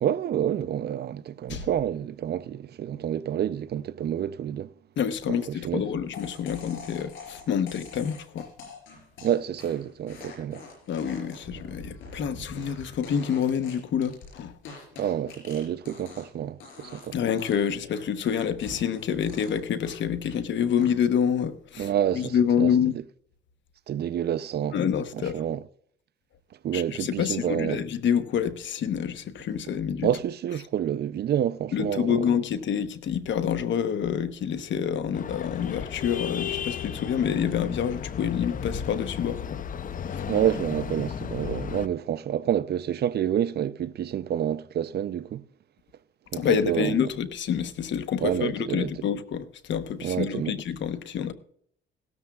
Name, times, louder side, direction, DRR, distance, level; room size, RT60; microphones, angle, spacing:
voice 1, 0.0-4.7 5.3-5.8 9.2-10.6 15.0-17.2 21.8-23.0 23.9-24.8 25.1-25.6 26.6-27.8 30.0-32.3 40.3-45.4 46.3-46.9 48.2-48.9 50.0-50.5, right 10 dB, 55° right, 0.5 m, -28 dB
voice 2, 5.0-8.5 10.9-14.5 17.1-22.9 24.7-25.4 26.7-30.1 31.7-39.6 40.1-40.2 46.3-51.3, left 8 dB, 70° left, 1.0 m, -27 dB
sound 1, 6.1-16.4 16.6-17.1 17.4-20.4 20.8-21.2, left 4 dB, 90° left, 4.7 m, -45 dB
sound 2, 35.1-41.9, left 8 dB, 45° left, 0.6 m, -34 dB
16.5 x 13.5 x 2.3 m
cardioid pair, 90°, 20 cm